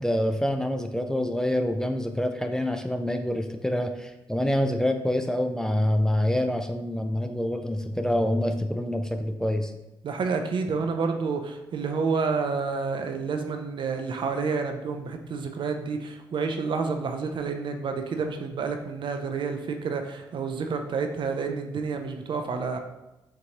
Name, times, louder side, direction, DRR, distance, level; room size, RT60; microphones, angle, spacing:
voice 1, 0.0-9.7, left 1 dB, 5° left, 6 dB, 0.4 m, -26 dB
voice 2, 10.0-22.8, right 5 dB, 60° right, 5 dB, 0.5 m, -29 dB
4.5 x 2.6 x 2.9 m, 0.94 s
supercardioid pair, 55°, 9 cm